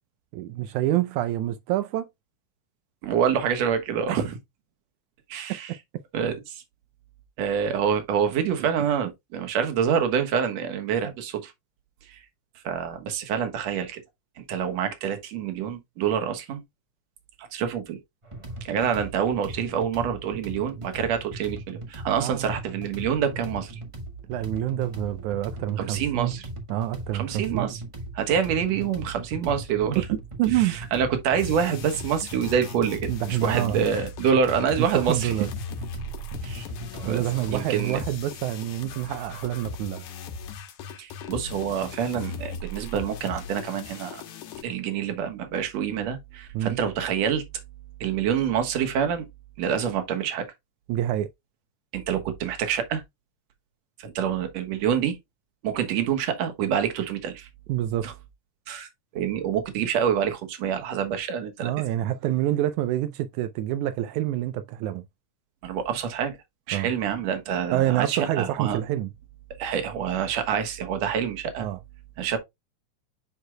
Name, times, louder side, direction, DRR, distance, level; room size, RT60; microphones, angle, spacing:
voice 1, 0.3-2.1 4.1-4.2 8.6-8.7 22.2-22.5 24.3-26.3 26.7-27.7 30.0-30.1 30.4-30.8 33.1-33.8 34.8-35.5 37.1-40.1 46.5-46.8 50.9-51.3 57.7-58.1 61.6-65.0 66.7-66.9 67.7-69.1 71.6-71.8, right 13 dB, 85° right, 2.0 m, -27 dB
voice 2, 3.0-4.4 5.3-5.7 6.1-6.6 7.4-11.5 12.1-12.2 12.6-14.0 14.4-16.6 17.4-18.0 18.6-23.8 25.8-26.4 27.1-27.8 28.1-30.0 30.5-35.3 36.4-36.7 37.0-37.2 37.5-38.0 41.0-44.2 44.6-47.4 48.0-49.3 49.6-50.5 51.9-53.0 54.0-55.2 55.6-57.5 58.0-58.1 58.7-61.7 65.6-66.4 66.7-68.8 69.6-71.7 72.2-72.4, right 8 dB, 65° right, 2.4 m, -26 dB
sound 1, 18.2-38.1, right 2 dB, 30° right, 0.5 m, -38 dB
sound 2, 31.4-44.6, left 4 dB, 90° left, 2.6 m, -39 dB
9.7 x 4.6 x 2.2 m
omnidirectional pair, 3.4 m